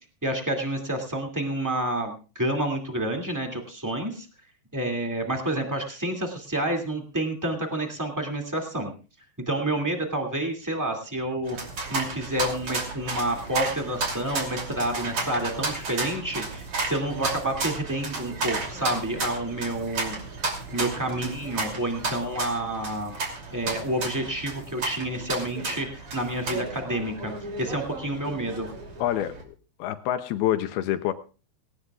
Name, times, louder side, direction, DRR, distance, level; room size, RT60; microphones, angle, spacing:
voice 1, 0.2-4.3 4.7-8.9 9.5-11.6 11.9-20.1 20.7-23.1 23.5-27.3 27.6-28.7, right 1 dB, 15° right, 2 dB, 0.6 m, -29 dB
sound 1, 11.5-29.4, right 3 dB, 35° right, 3.3 m, -33 dB
voice 2, 29.0-29.3 29.8-31.1, left 12 dB, 75° left, 9 dB, 2.4 m, -26 dB
19.0 x 18.0 x 2.4 m, 0.35 s
omnidirectional pair, 5.0 m